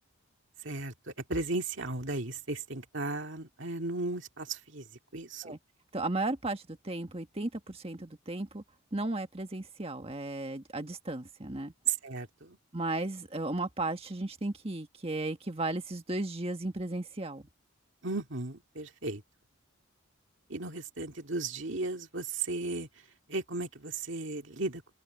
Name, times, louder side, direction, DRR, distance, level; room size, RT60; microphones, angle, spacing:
voice 1, 0.6-4.9 5.1-5.6 11.9-12.6 18.0-19.2 20.5-22.9 23.3-24.8, right 3 dB, 60° right, 2.3 m, -35 dB
voice 2, 5.9-8.6 8.9-11.7 12.7-17.5, right 2 dB, 30° right, 1.6 m, -35 dB
open air
head